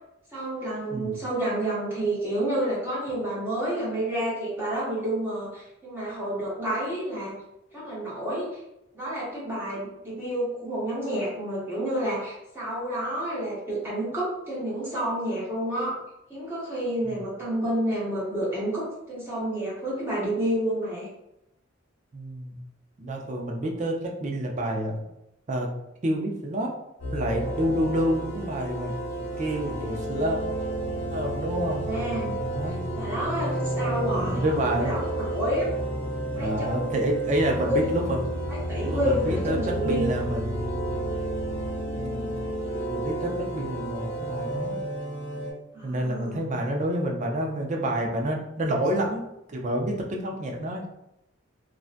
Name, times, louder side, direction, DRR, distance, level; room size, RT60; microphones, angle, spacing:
voice 1, 0.3-7.3 7.7-8.6 8.9-15.9 16.3-21.1 31.5-32.4 32.9-35.7 36.3-36.9 37.6-37.9 38.5-40.1 45.7-46.4, right 1 dB, 10° right, -8 dB, 0.8 m, -29 dB
voice 2, 0.9-1.2 17.0-17.2 22.1-22.6 23.0-25.0 25.5-25.7 26.0-26.7 27.1-30.4 31.1-31.9 32.5-32.8 34.1-34.9 36.3-38.3 38.8-40.7 41.9-42.4 42.9-44.8 45.8-50.9, right 1 dB, 35° right, 0 dB, 0.4 m, -28 dB
sound 1, 27.0-45.5, right 1 dB, 70° left, 0.9 m, -31 dB
2.5 x 2.1 x 2.4 m, 0.85 s
head